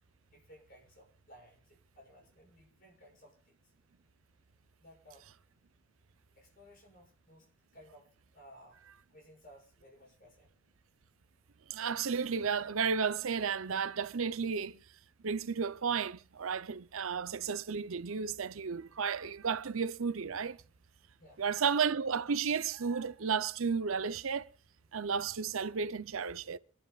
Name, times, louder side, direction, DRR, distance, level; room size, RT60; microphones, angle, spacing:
voice 1, 0.3-3.5 4.8-5.3 6.3-7.5 7.7-10.5 21.2-21.4, equal, 45° left, 6.4 m, -58 dB
voice 2, 11.7-14.8 15.2-20.6 21.4-24.5 24.9-26.6, right 6 dB, 85° right, 0.7 m, -33 dB
26.5 x 11.5 x 2.4 m
head